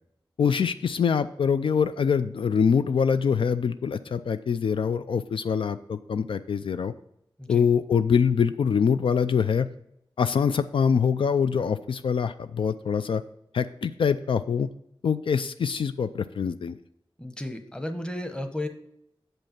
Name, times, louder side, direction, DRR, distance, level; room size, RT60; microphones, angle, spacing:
voice 1, 0.4-6.9 7.5-9.7 10.2-13.2 13.5-14.7 15.0-16.8, left 6 dB, 75° left, 11 dB, 0.4 m, -24 dB
voice 2, 17.2-18.7, left 1 dB, 10° left, 7 dB, 0.9 m, -33 dB
7.3 x 5.4 x 5.8 m, 0.76 s
wide cardioid pair, 95°, 9 cm